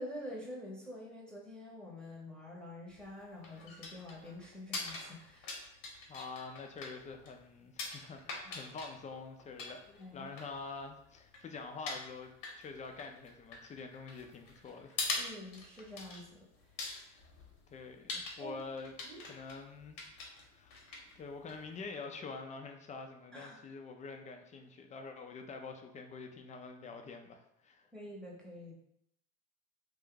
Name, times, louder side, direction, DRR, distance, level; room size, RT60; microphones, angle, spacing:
voice 1, 0.0-5.7 8.4-8.6 10.0-10.3 15.2-16.5 18.4-18.6 19.0-19.2 23.3-23.6 27.9-28.7, left 1 dB, ahead, -4 dB, 0.8 m, -47 dB
sound 1, 2.9-21.9, left 3 dB, 60° left, 0.9 m, -45 dB
voice 2, 6.1-15.0 17.1-17.2 17.7-18.9 19.3-20.0 20.5-20.8 21.2-27.9, left 4 dB, 20° left, 5 dB, 0.4 m, -46 dB
2.6 x 2.3 x 3.7 m, 0.77 s
hypercardioid pair, 70°, 36 cm